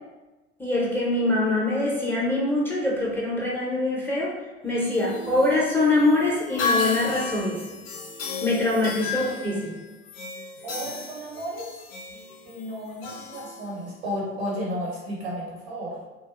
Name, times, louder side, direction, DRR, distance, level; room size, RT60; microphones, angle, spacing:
voice 1, 0.6-4.3 4.6-7.6 8.4-9.7, left 2 dB, 5° left, -5 dB, 0.5 m, -24 dB
sound 1, 4.6-14.2, left 4 dB, 65° left, 0.4 m, -34 dB
voice 2, 10.6-11.7 12.4-16.0, equal, 70° right, -4 dB, 0.9 m, -33 dB
2.6 x 2.2 x 2.2 m, 1.1 s
figure-of-eight pair, 60°, 32 cm